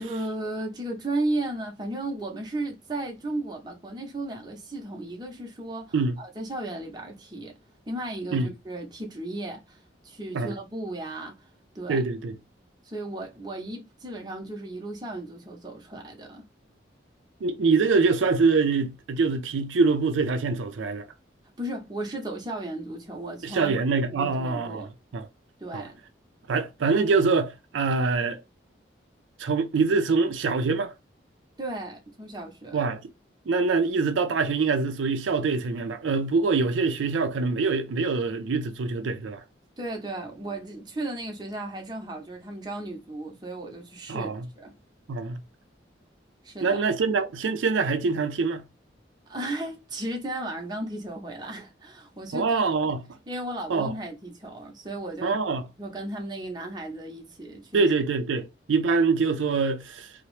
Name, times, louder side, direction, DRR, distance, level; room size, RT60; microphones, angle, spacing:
voice 1, 0.0-7.5 7.9-9.8 10.0-11.5 11.7-12.0 12.8-16.4 21.6-23.7 24.1-24.9 25.6-26.0 31.6-32.8 39.8-44.7 46.4-46.8 49.3-52.6 53.3-55.4 55.8-57.8, right 1 dB, 20° right, 0.7 m, -35 dB
voice 2, 11.9-12.4 17.4-21.1 23.4-24.9 25.1-25.3 25.7-25.9 26.5-28.4 29.4-30.9 32.7-33.1 33.5-39.4 44.1-44.5 45.1-45.4 46.6-48.6 52.3-53.0 53.7-53.9 55.2-55.7 57.7-60.1, right 4 dB, 90° right, 0.4 m, -24 dB
2.8 x 2.0 x 3.0 m
head